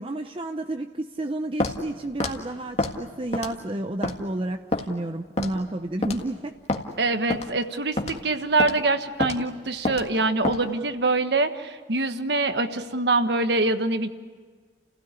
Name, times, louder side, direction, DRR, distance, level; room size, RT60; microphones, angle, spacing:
voice 1, 0.0-6.6, right 1 dB, 30° right, 6 dB, 0.7 m, -31 dB
Walk footsteps, 1.6-1.8 2.2-2.4 2.8-3.0 3.3-3.6 4.0-4.2 4.7-4.9 5.4-5.6 6.0-6.2 6.7-6.8 7.3-7.5 8.0-8.2 8.6-8.8 9.2-9.4 9.9-10.1 10.4-10.6, left 2 dB, 35° left, 1.8 m, -27 dB
voice 2, 7.0-14.1, right 2 dB, 70° right, 8 dB, 1.4 m, -24 dB
30.0 x 16.5 x 9.9 m, 1.5 s
head